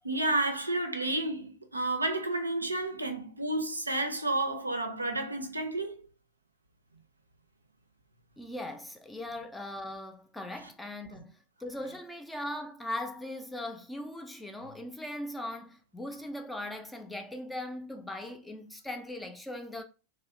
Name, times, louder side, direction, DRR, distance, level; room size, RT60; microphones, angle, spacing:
voice 1, 0.0-6.0, right 2 dB, 80° right, 0.4 m, -31 dB
voice 2, 8.4-19.8, left 1 dB, 5° left, 0.4 m, -39 dB
2.7 x 2.0 x 2.4 m
figure-of-eight pair, 90°, 0 cm